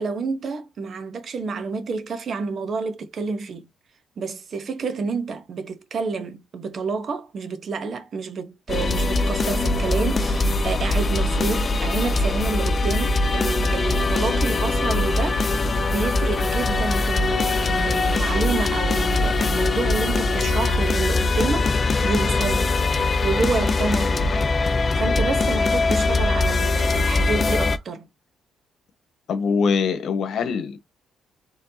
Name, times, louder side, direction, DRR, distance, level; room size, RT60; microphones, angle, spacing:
voice 1, 0.0-3.7 4.2-22.8 23.2-28.1, right 4 dB, 50° right, 1.1 m, -29 dB
sound 1, 8.7-27.8, left 3 dB, 35° left, 0.6 m, -22 dB
voice 2, 29.3-30.8, left 5 dB, 70° left, 1.3 m, -23 dB
4.5 x 3.4 x 2.8 m
cardioid pair, 90°, 0 cm